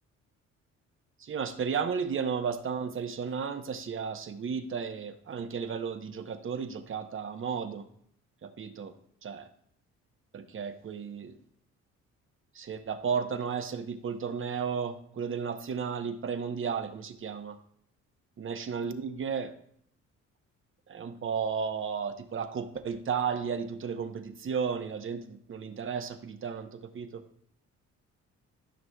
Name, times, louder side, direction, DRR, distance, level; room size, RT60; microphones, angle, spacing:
voice 1, 1.2-7.9 8.4-8.9 9.2-9.5 10.3-11.4 12.5-17.6 18.4-19.5 20.9-27.2, right 6 dB, 45° right, 9 dB, 0.8 m, -34 dB
12.5 x 6.0 x 2.3 m, 0.66 s
cardioid pair, 90°, 30 cm